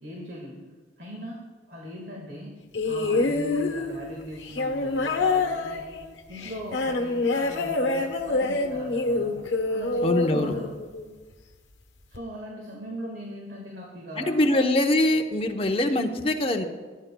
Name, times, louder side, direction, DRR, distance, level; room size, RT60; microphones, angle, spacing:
voice 1, 0.0-0.6 1.0-1.4 1.7-2.5 2.8-5.9 6.3-9.4 9.7-10.7 12.1-14.4, equal, 65° right, -2 dB, 1.7 m, -39 dB
sound 1, 2.7-11.1 12.1-12.2, left 3 dB, 90° left, 1.0 m, -26 dB
voice 2, 10.0-10.5 14.2-16.6, left 1 dB, 30° left, 4 dB, 0.7 m, -23 dB
16.5 x 9.2 x 2.2 m, 1.4 s
head